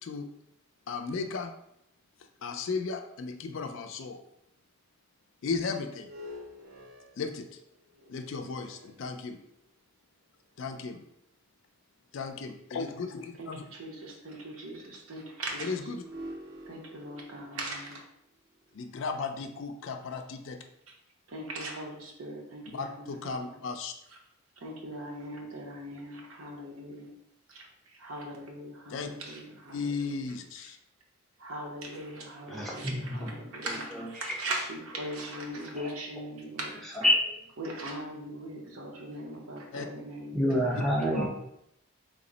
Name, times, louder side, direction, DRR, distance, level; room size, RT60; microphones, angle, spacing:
voice 1, 0.9-1.5 2.4-4.2 5.4-6.1 7.2-7.4 8.1-9.4 10.6-11.0 12.1-13.6 15.6-16.0 18.7-20.6 22.7-23.9 28.9-29.1 29.7-30.8 39.7-39.9, left 4 dB, 60° left, 6 dB, 0.3 m, -35 dB
sound 1, 5.9-9.7 10.4-10.5 15.7-20.0, equal, 50° right, 0.5 m, -48 dB
voice 2, 13.4-15.9 16.7-18.0 21.3-23.4 24.1-24.2 24.6-27.1 27.5-30.7 31.4-37.0 37.6-40.4 41.0-41.3, right 1 dB, 70° right, -1 dB, 0.8 m, -40 dB
voice 3, 32.5-33.3 33.9-34.0 37.0-37.4 40.3-41.3, left 1 dB, ahead, -4 dB, 0.5 m, -27 dB
3.5 x 2.0 x 3.8 m, 0.77 s
head